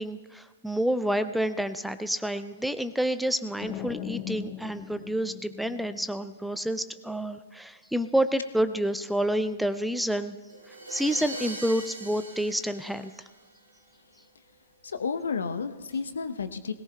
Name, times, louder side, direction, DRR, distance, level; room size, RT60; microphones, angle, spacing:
voice 1, 0.0-10.4 10.7-13.1, right 1 dB, ahead, 12 dB, 0.4 m, -29 dB
sound 1, 3.6-6.4, left 10 dB, 30° left, 0.7 m, -39 dB
sound 2, 10.5-13.8, right 2 dB, 85° right, 2.7 m, -41 dB
voice 2, 14.8-16.7, left 5 dB, 70° left, 10 dB, 0.8 m, -31 dB
21.0 x 18.0 x 2.3 m, 1.4 s
figure-of-eight pair, 115°, 0 cm